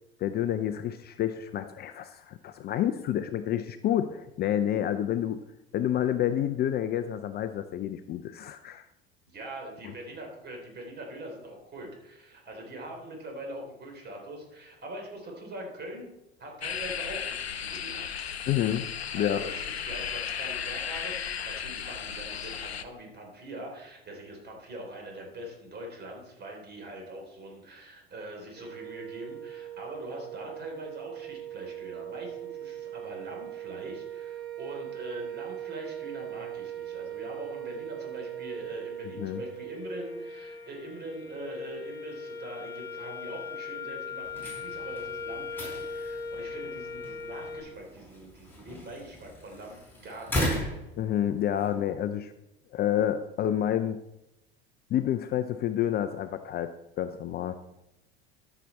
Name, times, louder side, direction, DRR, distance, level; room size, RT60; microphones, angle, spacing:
voice 1, 0.2-5.4 5.7-8.8 18.5-18.8 19.1-19.4 39.2-39.4 51.0-52.3 52.7-54.0 54.9-56.7 57.0-57.5, left 11 dB, 30° left, 10 dB, 0.5 m, -29 dB
voice 2, 9.3-16.1 16.4-18.1 19.2-50.6, right 1 dB, 35° right, 1 dB, 3.5 m, -43 dB
sound 1, 16.6-22.8, left 8 dB, 85° left, 0.6 m, -35 dB
sound 2, 28.6-47.6, right 2 dB, 90° right, 3.9 m, -39 dB
sound 3, 44.2-51.7, left 1 dB, 5° left, 4.3 m, -37 dB
13.0 x 6.0 x 4.2 m, 0.90 s
figure-of-eight pair, 70°, 31 cm